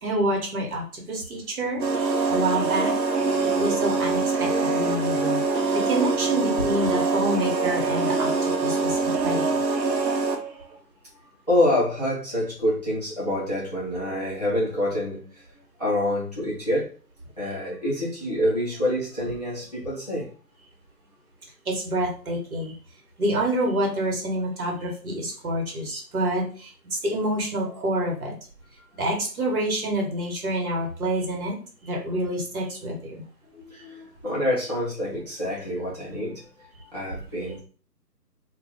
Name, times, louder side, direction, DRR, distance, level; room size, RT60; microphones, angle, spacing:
voice 1, 0.0-1.8 2.3-3.0 3.6-5.4 5.7-9.6 21.6-22.8 23.2-28.4 28.9-31.6 31.8-33.2, right 1 dB, 60° right, 1 dB, 1.3 m, -27 dB
sound 1, 1.8-10.5, right 3 dB, 90° right, 0.7 m, -24 dB
voice 2, 11.5-15.5 15.8-16.9 17.4-20.3 33.5-37.6, left 1 dB, 25° left, -6 dB, 0.6 m, -27 dB
2.4 x 2.4 x 3.5 m, 0.40 s
figure-of-eight pair, 150°, 49 cm